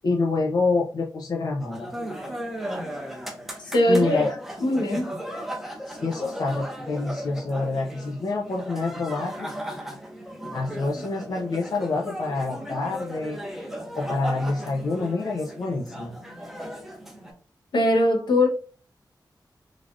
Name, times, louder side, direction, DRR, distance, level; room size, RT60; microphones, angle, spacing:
voice 1, 0.0-1.9 3.9-4.4 5.9-9.5 10.5-13.4 14.0-16.2, left 3 dB, 55° left, 0.4 m, -27 dB
sound 1, 1.6-17.3, equal, 5° right, 0.6 m, -36 dB
voice 2, 3.6-4.2 4.6-5.1 17.7-18.5, left 1 dB, 80° left, 0.8 m, -21 dB
3.2 x 2.3 x 2.4 m
wide cardioid pair, 155°, 8 cm